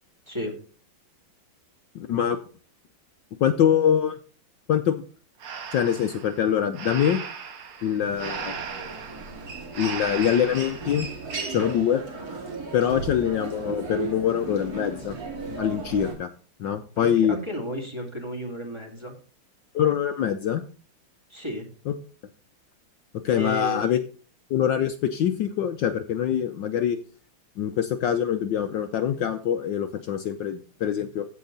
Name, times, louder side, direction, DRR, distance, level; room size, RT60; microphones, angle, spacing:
voice 1, 1.9-2.4 3.4-4.2 4.7-5.0 5.7-7.2 7.8-8.5 9.7-11.1 11.5-12.0 12.7-15.1 15.5-16.3 16.6-17.4 19.7-20.6 21.9-22.0 23.2-24.0 24.5-27.0 27.6-31.3, left 9 dB, 70° left, 8 dB, 1.3 m, -24 dB
Breathing, 5.4-10.9, right 6 dB, 90° right, 2.3 m, -37 dB
Human voice, 8.1-16.1, right 4 dB, 45° right, 2.9 m, -36 dB
voice 2, 17.0-19.1 21.3-21.6 23.3-23.8, equal, 15° right, 3 dB, 2.5 m, -32 dB
15.0 x 5.7 x 4.0 m, 0.38 s
omnidirectional pair, 2.3 m